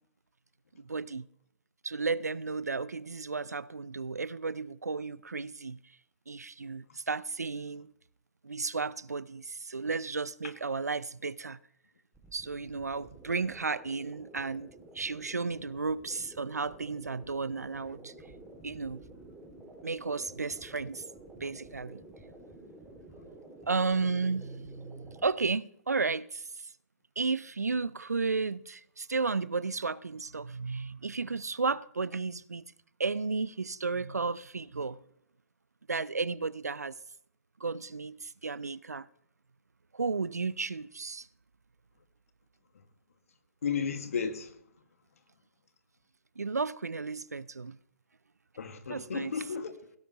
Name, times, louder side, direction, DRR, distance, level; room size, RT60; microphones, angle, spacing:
voice 1, 0.8-1.3 1.8-5.8 6.3-7.9 8.4-11.6 12.3-18.1 18.6-19.0 19.8-21.0 21.4-22.0 23.7-26.4 27.2-32.6 33.0-35.0 35.9-36.9 37.6-39.1 39.9-41.3 46.4-47.8 48.9-49.5, right 4 dB, 85° right, 0.5 m, -33 dB
sound 1, 12.1-25.3, right 2 dB, 5° right, 2.3 m, -51 dB
voice 2, 43.6-44.5 48.6-49.7, left 6 dB, 65° left, 1.8 m, -33 dB
17.0 x 15.0 x 2.9 m
figure-of-eight pair, 125°, 8 cm